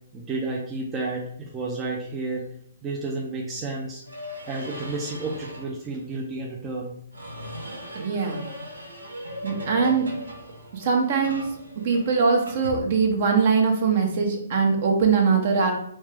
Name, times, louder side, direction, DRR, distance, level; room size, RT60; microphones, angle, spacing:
voice 1, 0.1-2.4 2.8-4.0 4.5-6.9, right 3 dB, 20° right, -3 dB, 0.5 m, -31 dB
sound 1, 4.0-5.8 7.1-13.4, equal, 90° right, 0.9 m, -39 dB
voice 2, 7.9-8.5 9.4-10.1 10.7-11.5 11.8-15.7, right 5 dB, 50° right, 2 dB, 0.9 m, -22 dB
3.3 x 2.8 x 3.3 m, 0.68 s
hypercardioid pair, 135°, 0 cm